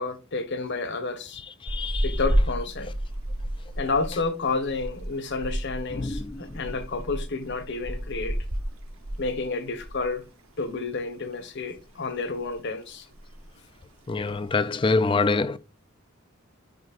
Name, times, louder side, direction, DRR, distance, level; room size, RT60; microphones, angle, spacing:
voice 1, 0.0-1.4 2.0-2.9 3.8-8.4 9.2-10.2 10.6-13.1, left 3 dB, 55° left, 1.2 m, -30 dB
voice 2, 1.6-2.1 5.9-6.6 14.1-15.6, left 3 dB, 25° left, 0.4 m, -25 dB
sound 1, 1.7-10.2 10.4-10.7 11.1-11.9 12.2-12.6 12.9-13.0 13.1-13.6 14.1-14.6, equal, 75° right, 1.5 m, -31 dB
10.5 x 5.1 x 2.5 m
head